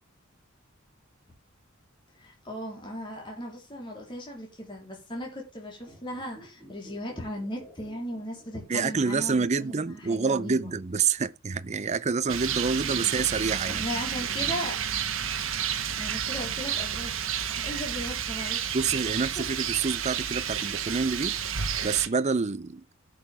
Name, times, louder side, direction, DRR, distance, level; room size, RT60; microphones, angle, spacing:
voice 1, 2.2-10.7 13.7-14.8 16.0-17.2 17.6-19.2 20.5-20.8, equal, 25° left, 3.5 m, -37 dB
sound 1, 5.8-9.2 9.4-9.5, equal, 5° left, 4.5 m, -53 dB
voice 2, 8.7-13.9 18.7-21.4 21.8-22.8, right 5 dB, 30° right, 0.5 m, -27 dB
Rain, 12.3-22.1, right 8 dB, 65° right, 1.3 m, -31 dB
15.0 x 6.7 x 3.4 m
head